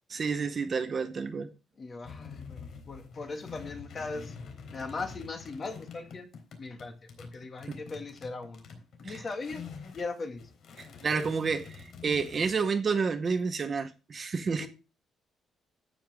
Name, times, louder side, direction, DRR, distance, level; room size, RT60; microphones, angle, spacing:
voice 1, 0.1-1.5 9.1-9.2 10.8-14.7, right 5 dB, 30° right, 0.9 m, -30 dB
voice 2, 1.8-4.4 4.7-6.3 6.6-8.7 9.0-9.6 9.9-10.5 14.6-14.7, left 3 dB, 30° left, 1.9 m, -39 dB
sound 1, 2.0-10.1 10.4-12.5, left 5 dB, 55° left, 3.6 m, -46 dB
12.5 x 9.1 x 3.5 m
cardioid pair, 170°, 0 cm